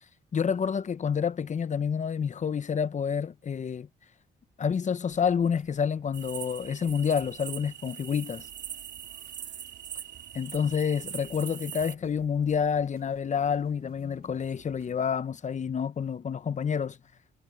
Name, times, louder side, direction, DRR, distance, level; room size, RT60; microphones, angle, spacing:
voice 1, 0.3-3.9 4.6-8.5 10.3-17.0, left 7 dB, 35° left, 0.8 m, -28 dB
sound 1, 5.1-15.0, right 13 dB, 85° right, 3.1 m, -59 dB
sound 2, 6.1-11.9, right 9 dB, 65° right, 2.6 m, -42 dB
cardioid pair, 90°, 20 cm